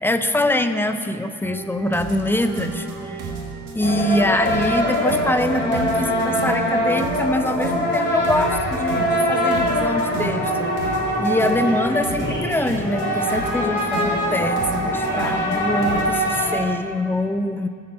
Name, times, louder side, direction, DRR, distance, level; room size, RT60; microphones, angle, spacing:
voice 1, 0.0-3.2 3.7-17.7, left 1 dB, 5° left, 8 dB, 0.7 m, -24 dB
sound 1, 1.4-16.0, right 4 dB, 90° right, 1.7 m, -32 dB
sound 2, 3.8-16.5, equal, 40° left, 3.4 m, -23 dB
19.0 x 7.8 x 4.3 m, 2.3 s
cardioid pair, 90°, 30 cm